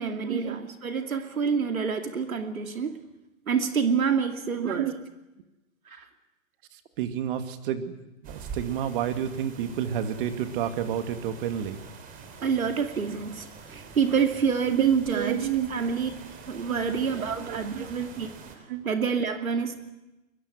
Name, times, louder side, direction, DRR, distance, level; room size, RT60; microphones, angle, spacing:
voice 1, 0.0-3.0 3.5-4.9 5.9-6.0 12.4-16.1 16.5-18.3 18.8-19.8, right 6 dB, 85° right, 2.6 m, -27 dB
voice 2, 4.6-5.0 6.7-7.9 8.2-11.8 14.7-15.8 16.7-16.8 17.2-17.9 18.7-18.8, right 10 dB, 40° right, 2.3 m, -30 dB
sound 1, 8.2-18.6, right 5 dB, 20° right, 3.5 m, -45 dB
23.0 x 22.0 x 9.6 m
hypercardioid pair, 140°, 41 cm